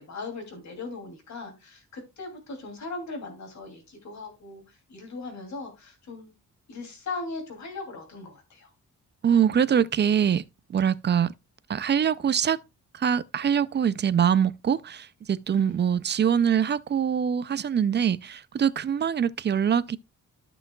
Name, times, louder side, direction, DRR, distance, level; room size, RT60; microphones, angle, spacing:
voice 1, 0.0-4.6 4.9-6.3 6.7-8.7 15.5-15.6, left 3 dB, 60° left, 2.8 m, -38 dB
voice 2, 9.2-10.4 10.7-11.3 11.7-12.6 12.9-20.0, right 8 dB, 35° right, 0.4 m, -24 dB
13.5 x 5.9 x 2.3 m
wide cardioid pair, 175°, 32 cm